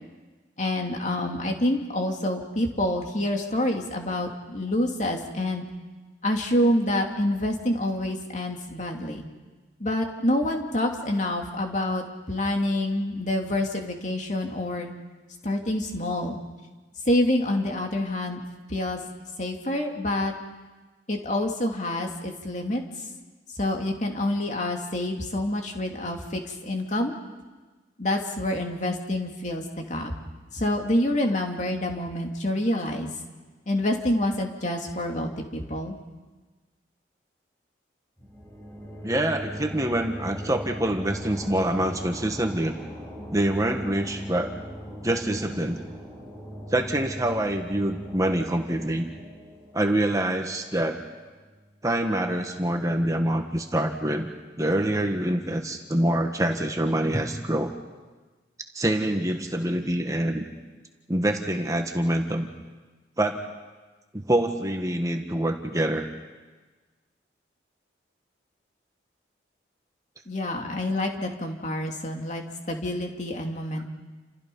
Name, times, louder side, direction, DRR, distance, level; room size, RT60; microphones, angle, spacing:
voice 1, 0.6-5.7 6.2-9.2 9.8-14.9 15.4-16.4 17.1-18.4 18.7-19.0 19.4-20.3 21.1-22.8 23.6-27.1 28.0-30.1 30.5-33.1 33.7-36.0 70.3-73.8, left 1 dB, 40° left, 2 dB, 2.7 m, -27 dB
sound 1, 38.2-51.6, equal, 15° left, 6.0 m, -40 dB
voice 2, 39.0-42.7 43.3-44.5 45.0-45.8 46.7-49.1 49.7-51.0 51.8-54.3 54.6-57.7 58.7-60.4 61.1-62.5 63.2-63.4 64.1-66.1, right 1 dB, 20° right, 4 dB, 1.5 m, -25 dB
29.5 x 28.0 x 5.5 m, 1.3 s
head